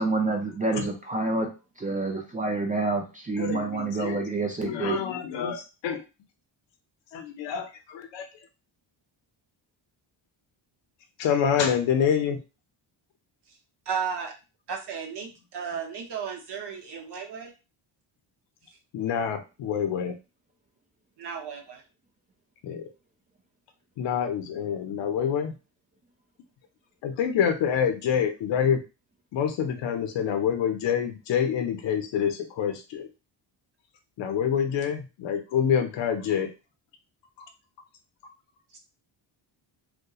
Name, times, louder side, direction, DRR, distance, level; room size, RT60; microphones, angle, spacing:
voice 1, 0.0-1.5 1.8-5.0, right 3 dB, 20° right, 1 dB, 0.3 m, -28 dB
voice 2, 3.4-4.2 4.6-6.0 7.1-8.3 11.2-12.4 18.9-20.1 22.6-22.8 24.0-25.5 27.0-28.8 29.3-33.1 34.2-36.5, left 8 dB, 65° left, 6 dB, 0.6 m, -26 dB
voice 3, 13.9-14.3 14.7-17.5 21.2-21.8 38.7-38.8, right 6 dB, 60° right, 3 dB, 0.7 m, -34 dB
2.7 x 2.1 x 2.3 m, 0.30 s
cardioid pair, 120°, 47 cm